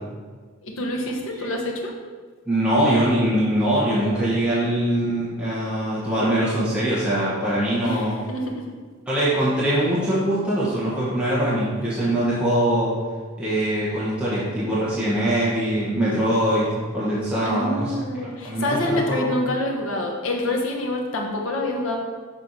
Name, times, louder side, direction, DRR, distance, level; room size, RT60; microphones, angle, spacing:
voice 1, 0.6-1.9 7.8-8.7 17.4-22.0, left 1 dB, 80° left, 1 dB, 1.2 m, -26 dB
voice 2, 2.5-8.1 9.1-12.9 13.4-17.9 18.4-19.3, right 1 dB, 5° right, -10 dB, 1.4 m, -22 dB
7.1 x 4.4 x 4.7 m, 1.5 s
head